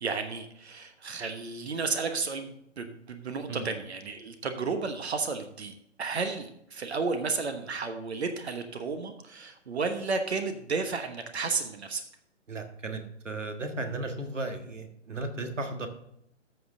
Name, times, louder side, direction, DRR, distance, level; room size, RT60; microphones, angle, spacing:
voice 1, 0.0-12.0, right 4 dB, 60° right, 8 dB, 1.2 m, -32 dB
voice 2, 12.5-15.9, right 2 dB, 75° right, 6 dB, 1.7 m, -35 dB
14.0 x 5.4 x 3.7 m, 0.75 s
figure-of-eight pair, 125°, 37 cm